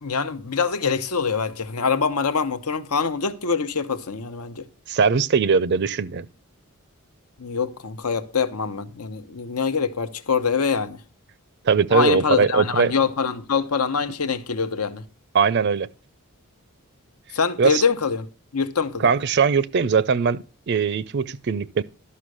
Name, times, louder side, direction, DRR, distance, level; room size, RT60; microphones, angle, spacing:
voice 1, 0.0-4.7 7.4-11.0 11.9-15.0 17.3-18.3 18.5-19.1, left 5 dB, 85° left, 1.0 m, -24 dB
voice 2, 4.9-6.3 11.6-12.9 15.3-15.9 17.6-17.8 19.0-21.8, right 5 dB, 50° right, 0.4 m, -20 dB
12.0 x 5.7 x 6.3 m
head